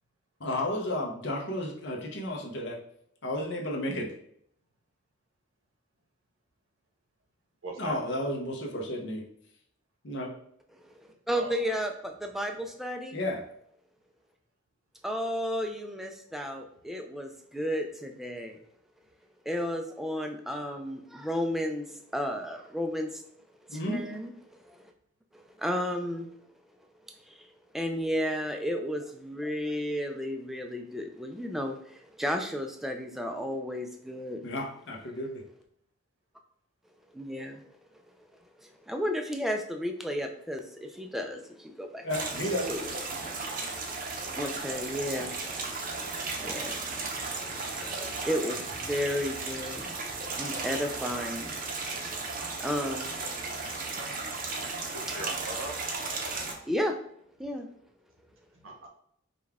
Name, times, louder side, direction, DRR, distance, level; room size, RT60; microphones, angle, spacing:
voice 1, 0.4-2.8 3.2-4.1 7.8-9.2 10.0-10.3 13.1-13.4 23.7-24.0 34.4-35.4 42.0-42.7, left 1 dB, 55° left, 0 dB, 0.7 m, -32 dB
voice 2, 7.6-8.0 11.3-11.6 54.0-54.1 54.9-55.7 58.6-58.9, right 2 dB, 70° right, 2 dB, 0.9 m, -39 dB
voice 3, 10.8-13.2 15.0-18.6 19.5-23.2 23.7-24.8 25.3-26.3 27.2-27.5 27.7-34.4 37.1-37.6 38.6-42.1 42.7-42.9 44.3-45.5 46.3-46.8 47.3-47.6 48.1-51.6 52.6-53.1 56.6-57.0 57.4-57.7, equal, ahead, 4 dB, 0.3 m, -33 dB
sound 1, 42.1-56.5, right 3 dB, 40° right, 0.6 m, -35 dB
5.2 x 2.3 x 3.5 m, 0.70 s
head